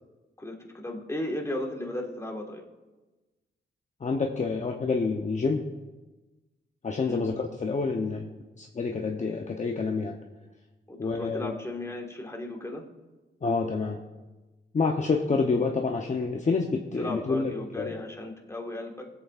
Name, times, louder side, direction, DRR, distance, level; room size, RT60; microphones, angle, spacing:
voice 1, 0.4-2.7 7.0-7.2 10.9-12.8 17.0-19.1, left 1 dB, 15° left, 0 dB, 1.6 m, -35 dB
voice 2, 4.0-5.6 6.8-10.2 11.0-11.5 13.4-14.0 14.7-18.0, left 4 dB, 40° left, 1 dB, 0.8 m, -28 dB
20.5 x 8.2 x 2.5 m, 1.2 s
cardioid pair, 90°, 20 cm